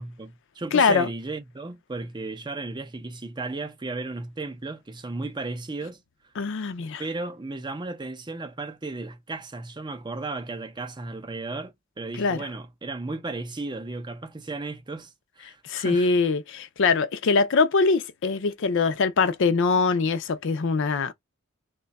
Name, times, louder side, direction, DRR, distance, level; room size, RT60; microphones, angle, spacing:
voice 1, 0.0-6.3 7.0-16.1, right 3 dB, 20° right, 0.5 m, -35 dB
voice 2, 0.7-1.1 6.4-7.0 12.2-12.5 15.6-21.1, left 4 dB, 55° left, 0.5 m, -23 dB
3.2 x 2.2 x 3.9 m
head